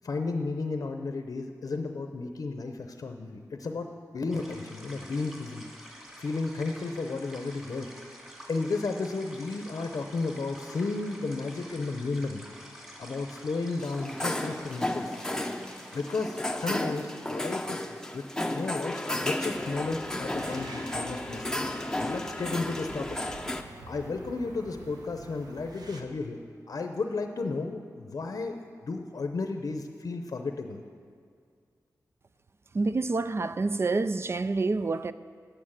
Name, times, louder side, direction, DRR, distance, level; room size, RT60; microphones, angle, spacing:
voice 1, 0.0-3.9 4.1-5.7 6.2-7.9 8.5-12.4 13.0-15.1 15.9-17.9 18.1-18.2 18.5-21.5 22.0-23.2 23.9-26.4 26.7-30.8, left 3 dB, 65° left, 5 dB, 0.7 m, -33 dB
sound 1, 4.3-16.5, equal, 10° right, 2.3 m, -48 dB
sound 2, 13.8-23.6, left 1 dB, 10° left, 0.7 m, -33 dB
sound 3, 19.5-26.0, right 2 dB, 90° right, 1.0 m, -47 dB
voice 2, 32.7-35.1, right 3 dB, 40° right, 13 dB, 0.4 m, -27 dB
9.9 x 8.8 x 7.4 m, 2.1 s
wide cardioid pair, 90°, 7 cm